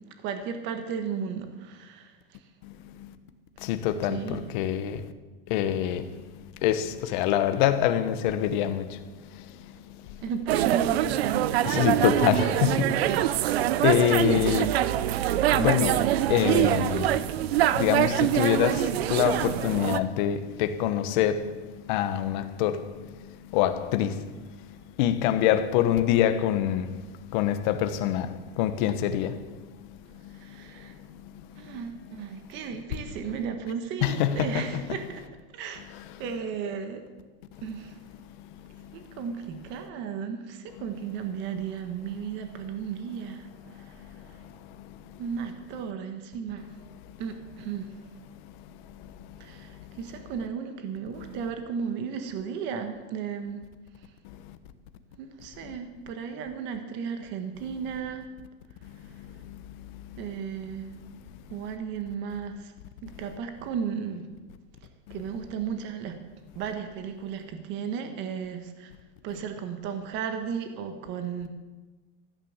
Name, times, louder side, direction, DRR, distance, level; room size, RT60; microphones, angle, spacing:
voice 1, 0.2-2.1 4.0-4.5 10.2-12.0 13.8-14.0 14.3-14.8 15.6-16.2 30.3-30.9 31.6-35.3 35.5-35.9 36.2-37.0 37.6-38.0 38.9-43.5 43.7-43.9 45.2-46.7 47.2-47.9 49.4-53.6 55.2-58.2 60.2-60.9 61.5-62.7 63.0-64.3 65.1-66.2 66.5-68.9 69.2-71.5, right 7 dB, 35° right, 1.5 m, -34 dB
voice 2, 2.6-3.1 3.6-5.1 5.5-10.2 11.6-14.7 15.4-15.9 16.3-31.8 34.0-34.7 35.9-36.0 37.5-37.6 38.4-39.2 43.7-45.2 48.4-48.5 49.0-49.8 54.2-54.6 55.6-55.7 58.8-60.2 61.1-61.2 65.1-65.2, left 11 dB, 50° left, 1.2 m, -27 dB
sound 1, 10.5-20.0, right 12 dB, 85° right, 0.8 m, -24 dB
14.5 x 10.0 x 7.4 m
supercardioid pair, 165°, 30 cm